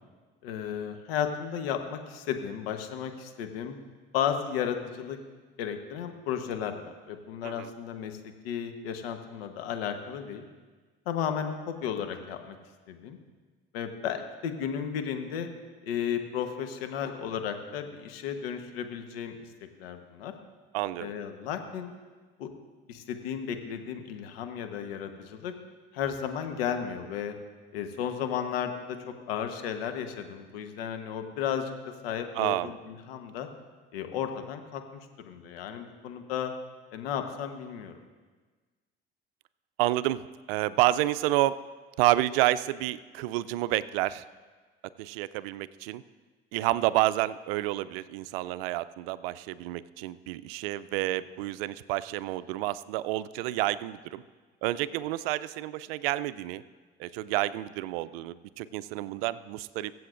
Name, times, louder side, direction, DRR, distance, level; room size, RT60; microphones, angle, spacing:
voice 1, 0.4-3.8 4.1-5.2 5.6-8.2 8.4-10.4 11.1-12.6 12.9-13.2 13.7-15.5 15.8-19.4 19.8-20.3 21.0-21.9 22.4-22.5 22.9-25.5 25.9-27.3 27.7-31.7 32.0-33.5 33.9-34.8 35.2-36.5 36.9-38.0, left 8 dB, 80° left, 6 dB, 1.1 m, -34 dB
voice 2, 20.7-21.1 32.3-32.7 39.8-41.6 42.0-44.2 45.0-46.0 46.5-54.2 54.6-56.6 57.0-59.9, right 16 dB, 75° right, 16 dB, 0.5 m, -29 dB
23.0 x 7.7 x 2.5 m, 1.4 s
hypercardioid pair, 60°, 29 cm